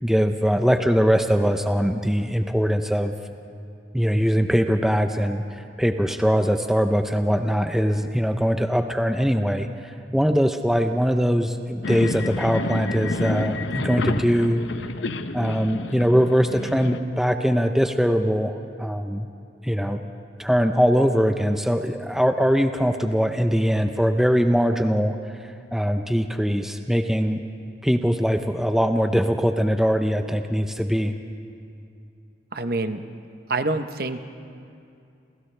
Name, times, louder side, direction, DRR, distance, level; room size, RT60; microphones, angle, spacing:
voice 1, 0.0-3.2 3.9-14.6 15.3-19.3 19.6-20.0 20.4-27.4 27.8-31.1, equal, ahead, 6 dB, 0.6 m, -22 dB
sound 1, 11.8-17.0, left 2 dB, 80° left, 0.8 m, -29 dB
voice 2, 32.5-33.0 33.5-34.2, right 2 dB, 55° right, 9 dB, 0.9 m, -26 dB
30.0 x 28.5 x 3.4 m, 2.5 s
head